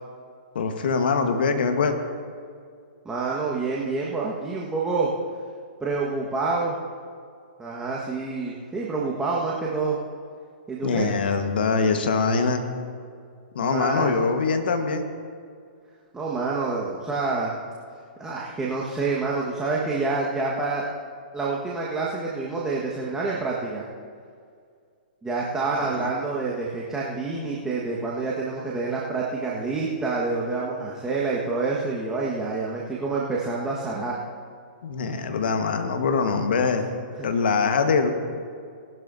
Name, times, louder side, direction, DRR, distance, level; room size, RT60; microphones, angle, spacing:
voice 1, 0.5-1.9 10.8-12.6 13.5-15.1 25.8-26.1 34.8-36.9 37.2-38.1, left 5 dB, 65° left, 6 dB, 1.4 m, -23 dB
voice 2, 3.0-5.1 5.8-6.8 7.6-10.0 10.7-11.1 13.6-14.3 16.1-17.5 18.2-20.9 21.3-23.8 25.2-34.2 36.7-36.8 37.2-37.3, right 3 dB, 10° right, -5 dB, 1.5 m, -27 dB
19.0 x 12.0 x 2.7 m, 2.2 s
hypercardioid pair, 120°, 6 cm